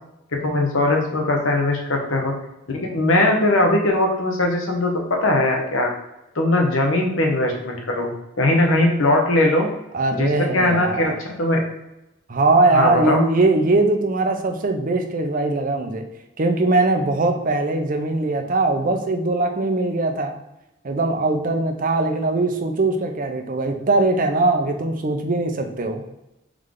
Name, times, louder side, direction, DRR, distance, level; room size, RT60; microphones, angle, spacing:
voice 1, 0.3-2.4 2.7-5.9 6.3-9.7 10.1-11.6 12.7-13.2, left 1 dB, 75° left, 2 dB, 0.9 m, -20 dB
voice 2, 9.9-11.1 12.3-16.0 16.4-20.3 20.8-26.0, right 2 dB, 40° right, 4 dB, 0.6 m, -21 dB
3.6 x 3.2 x 3.7 m, 0.92 s
head